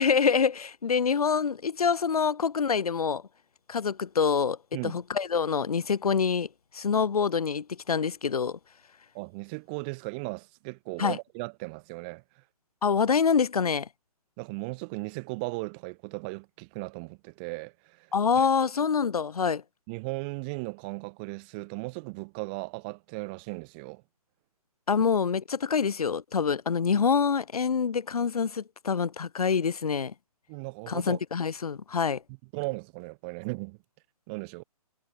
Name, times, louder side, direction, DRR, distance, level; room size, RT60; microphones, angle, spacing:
voice 1, 0.0-3.2 3.7-4.6 4.8-6.5 6.7-8.6 11.0-11.2 12.8-13.9 18.1-19.6 24.9-30.1 30.9-32.2, left 6 dB, 70° left, 1.7 m, -26 dB
voice 2, 9.1-12.4 14.4-18.5 19.9-24.0 30.5-31.2 32.5-33.8 34.3-34.6, right 31 dB, 15° right, 1.9 m, -37 dB
hypercardioid pair, 175°, 20 cm